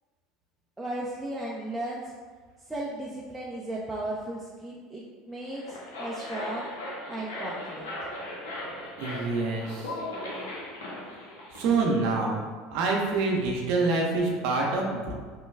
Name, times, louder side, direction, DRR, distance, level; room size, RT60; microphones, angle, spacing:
voice 1, 0.8-2.1 2.7-6.7 7.1-8.1, right 1 dB, 10° right, -5 dB, 0.5 m, -36 dB
sound 1, 5.4-11.6, left 1 dB, 85° left, 0.7 m, -38 dB
voice 2, 9.0-9.9 11.5-12.4 12.7-15.1, right 3 dB, 65° right, -1 dB, 0.6 m, -26 dB
3.2 x 2.2 x 3.3 m, 1.5 s
hypercardioid pair, 80°, 0 cm